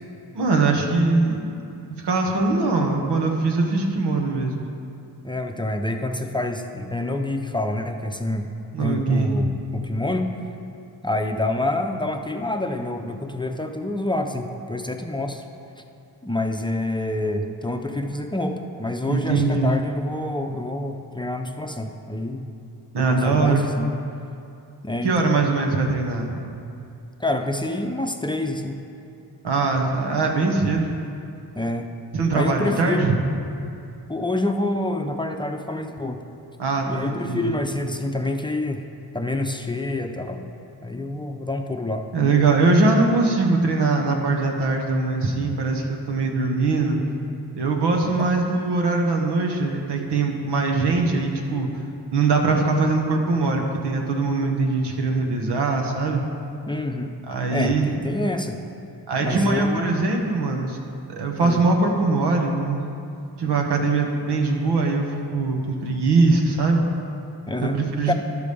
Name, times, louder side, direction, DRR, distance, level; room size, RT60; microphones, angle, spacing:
voice 1, 0.3-1.6 2.0-4.6 8.7-9.4 19.1-19.7 22.9-23.7 25.0-26.4 29.4-30.9 32.1-33.2 36.6-37.5 42.1-47.0 47.6-51.7 52.1-56.2 57.3-57.9 59.1-60.8 61.1-62.8 63.4-66.8 67.6-68.1, right 3 dB, 85° right, 2 dB, 1.3 m, -22 dB
voice 2, 5.2-8.5 8.8-10.3 11.0-15.4 16.2-22.4 23.0-23.9 24.8-25.1 27.2-28.8 31.5-31.9 32.3-33.1 34.1-36.2 36.9-38.8 39.1-40.4 40.8-42.1 48.2-48.3 56.7-57.1 57.5-58.6 59.2-59.9 61.4-61.6 67.5-67.8 68.1-68.2, left 1 dB, 10° left, 4 dB, 0.6 m, -27 dB
11.5 x 5.0 x 6.9 m, 2.6 s
cardioid pair, 65°, 39 cm